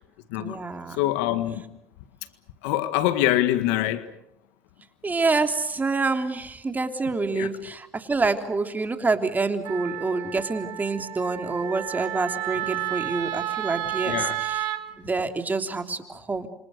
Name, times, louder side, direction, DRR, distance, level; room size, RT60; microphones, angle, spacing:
voice 1, 0.4-1.0 5.0-14.7 15.0-16.5, right 3 dB, 25° right, 3.3 m, -27 dB
voice 2, 1.0-1.6 2.6-4.1 7.3-7.7 14.0-14.4, left 14 dB, 85° left, 1.7 m, -24 dB
Wind instrument woodwind instrument, 9.6-14.8, right 14 dB, 75° right, 2.3 m, -31 dB
28.0 x 25.5 x 6.6 m
supercardioid pair, 75°, 7 cm